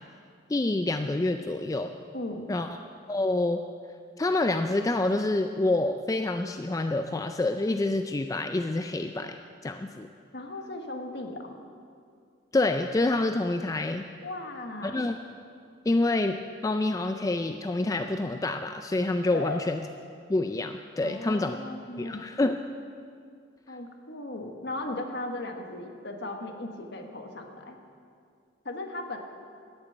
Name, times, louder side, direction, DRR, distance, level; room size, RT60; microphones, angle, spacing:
voice 1, 0.5-1.9 2.5-2.7 3.1-3.6 4.2-10.1 12.5-14.0 14.8-15.2 15.9-19.8 20.3-21.6 22.0-22.6, left 2 dB, 20° left, 7 dB, 0.3 m, -27 dB
voice 2, 2.1-2.6 10.3-11.6 14.2-15.1 19.3-19.6 21.0-22.3 23.7-27.8 28.6-29.2, left 2 dB, 60° left, 4 dB, 1.4 m, -37 dB
13.5 x 7.1 x 9.1 m, 2.3 s
head